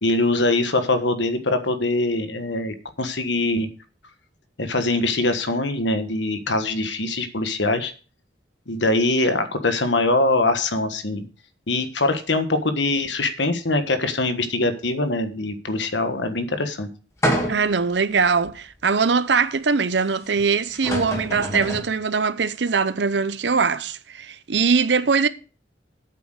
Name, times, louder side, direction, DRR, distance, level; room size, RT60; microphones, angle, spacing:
voice 1, 0.0-3.7 4.6-7.9 8.7-11.2 11.7-16.9, left 2 dB, 85° left, 1.5 m, -23 dB
sound 1, 17.2-17.8 18.5-18.6 20.4-20.5 20.7-21.9, equal, 15° left, 2.7 m, -26 dB
voice 2, 17.5-25.3, right 5 dB, 75° right, 0.7 m, -21 dB
8.5 x 7.5 x 6.6 m
head